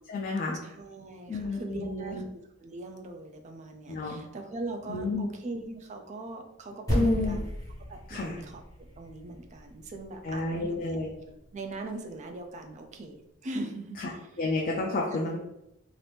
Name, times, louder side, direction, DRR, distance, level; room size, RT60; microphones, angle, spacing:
voice 1, 0.1-0.6 1.3-2.2 3.9-4.2 4.9-5.3 6.9-7.4 8.1-8.4 10.2-11.1 14.0-14.1 14.4-15.4, left 2 dB, 45° left, -2 dB, 0.4 m, -30 dB
voice 2, 0.6-7.5 7.9-14.3 15.2-15.3, right 2 dB, 35° right, 4 dB, 0.4 m, -41 dB
sound 1, 6.9-11.4, equal, 15° left, 1.2 m, -35 dB
2.9 x 2.6 x 3.3 m, 0.85 s
head